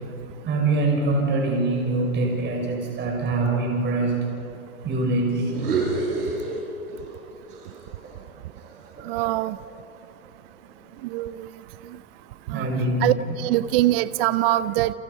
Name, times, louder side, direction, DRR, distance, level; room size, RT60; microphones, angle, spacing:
voice 1, 0.4-4.4 4.8-5.6 12.5-13.1, right 2 dB, 25° right, 0 dB, 6.0 m, -24 dB
sound 1, 5.4-7.2 7.5-9.7, right 3 dB, 90° right, 7.1 m, -30 dB
voice 2, 9.0-9.6 11.0-11.5 12.5-12.7 13.0-14.9, right 15 dB, 40° right, 16 dB, 0.7 m, -23 dB
29.5 x 28.5 x 5.5 m, 2.8 s
hypercardioid pair, 130°, 44 cm